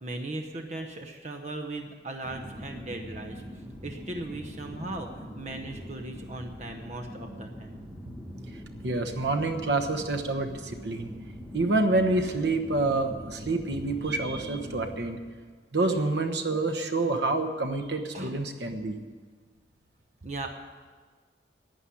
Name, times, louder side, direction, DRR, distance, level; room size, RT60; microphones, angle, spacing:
voice 1, 0.0-3.4 3.8-7.8 15.8-16.0 18.1-18.3 20.2-20.5, right 2 dB, 40° right, 4 dB, 0.9 m, -38 dB
sound 1, 2.2-15.1, equal, ahead, 1.3 m, -42 dB
voice 2, 8.5-11.1 11.5-15.2 15.7-19.0, right 2 dB, 70° right, 7 dB, 1.1 m, -28 dB
11.5 x 9.0 x 9.9 m, 1.5 s
head